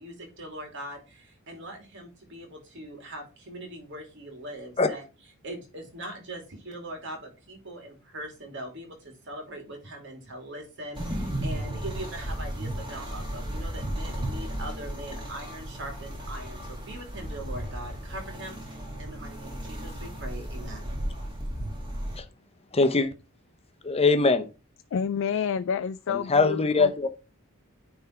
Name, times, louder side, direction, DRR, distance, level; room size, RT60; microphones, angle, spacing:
voice 1, 0.0-5.0 5.4-21.0, right 1 dB, 60° right, 2.6 m, -41 dB
sound 1, 10.9-22.2, right 1 dB, 20° right, 2.0 m, -34 dB
voice 2, 22.7-23.1 23.8-24.5 26.1-27.1, left 3 dB, 30° left, 0.8 m, -22 dB
voice 3, 24.9-26.9, left 7 dB, 60° left, 0.3 m, -29 dB
9.4 x 3.5 x 4.4 m
head